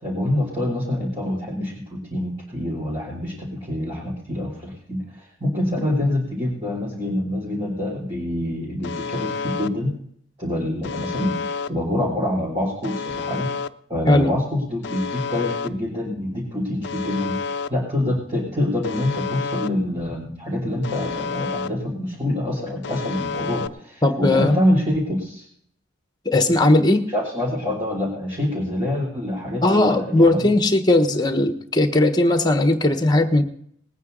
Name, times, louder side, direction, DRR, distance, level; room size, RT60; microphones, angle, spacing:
voice 1, 0.0-9.9 10.4-13.5 13.9-17.4 17.7-25.5 27.1-30.5, left 1 dB, 25° right, -6 dB, 3.4 m, -26 dB
Alarm, 8.8-9.7 10.8-11.7 12.8-13.7 14.8-15.7 16.8-17.7 18.8-19.7 20.8-21.7 22.8-23.7, left 5 dB, 60° left, 0.5 m, -29 dB
voice 2, 24.0-24.6 26.2-27.0 29.6-33.4, left 2 dB, 20° left, 7 dB, 1.3 m, -18 dB
20.0 x 9.3 x 4.0 m, 0.66 s
head